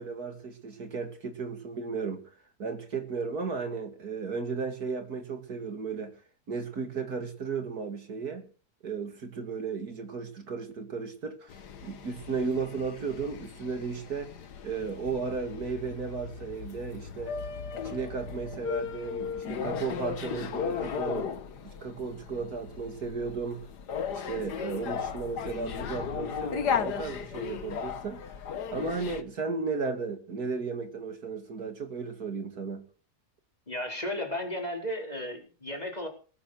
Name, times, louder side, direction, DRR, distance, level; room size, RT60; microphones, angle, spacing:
voice 1, 0.0-2.2 2.6-6.1 6.5-8.5 8.8-14.3 14.6-17.4 17.8-21.3 21.6-23.7 24.1-28.2 28.7-32.8, right 4 dB, 65° right, 2.7 m, -34 dB
sound 1, 11.5-29.2, left 7 dB, 90° left, 1.8 m, -36 dB
voice 2, 33.7-36.1, left 1 dB, 25° left, 4.5 m, -34 dB
20.0 x 10.5 x 6.4 m
omnidirectional pair, 1.7 m